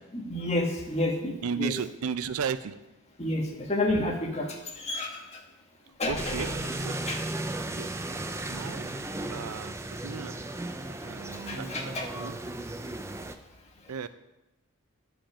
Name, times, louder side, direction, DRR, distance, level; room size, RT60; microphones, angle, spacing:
voice 1, 0.1-1.8 3.2-5.4 6.0-6.5 7.1-7.2 11.5-12.1, left 1 dB, 30° left, 2 dB, 1.3 m, -30 dB
voice 2, 1.4-2.7 6.1-6.5 6.8-7.0 7.8-7.9 8.5-9.0 9.3-9.7 10.0-10.4 11.1-12.4 13.9-14.1, right 6 dB, 85° right, 13 dB, 0.5 m, -34 dB
sound 1, 6.2-13.4, right 2 dB, 10° right, 0.4 m, -35 dB
10.5 x 5.1 x 6.0 m, 0.98 s
head